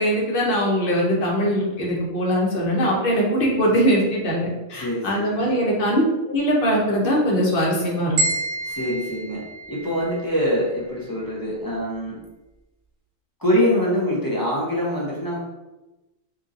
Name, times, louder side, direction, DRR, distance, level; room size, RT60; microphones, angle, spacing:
voice 1, 0.0-8.2, equal, 50° left, -2 dB, 1.0 m, -21 dB
voice 2, 4.7-5.5 8.6-9.4 9.7-12.2 13.4-15.4, equal, 25° left, -6 dB, 0.5 m, -24 dB
sound 1, 8.2-10.4, right 2 dB, 65° right, 1.1 m, -28 dB
3.6 x 2.7 x 2.5 m, 1.0 s
omnidirectional pair, 1.3 m